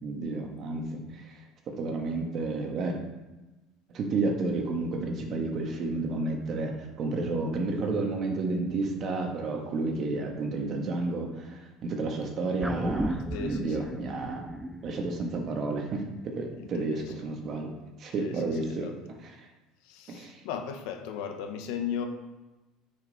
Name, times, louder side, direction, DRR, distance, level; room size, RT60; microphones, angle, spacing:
voice 1, 0.0-1.4 1.7-2.9 3.9-13.2 13.4-14.5 14.8-17.7 18.0-18.9 20.1-20.4, right 3 dB, 35° right, 2 dB, 1.4 m, -31 dB
sound 1, 12.6-17.2 17.5-17.6, right 1 dB, 5° right, 0.3 m, -36 dB
voice 2, 13.3-13.9 16.6-17.1 18.2-19.0 19.8-22.1, left 7 dB, 70° left, 6 dB, 1.0 m, -37 dB
9.3 x 5.2 x 4.1 m, 1.1 s
cardioid pair, 150°, 0 cm